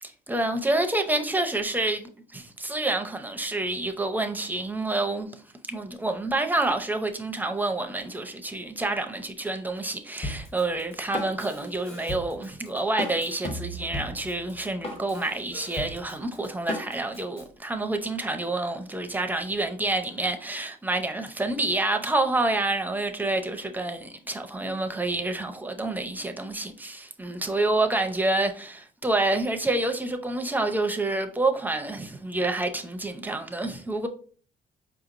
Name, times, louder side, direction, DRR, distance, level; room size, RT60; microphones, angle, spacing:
voice 1, 0.0-5.4 5.7-34.1, right 2 dB, 10° right, 0.6 m, -28 dB
Drum kit, 10.2-17.4, left 1 dB, 35° left, 1.3 m, -36 dB
4.7 x 2.9 x 2.5 m
cardioid pair, 100°, 16 cm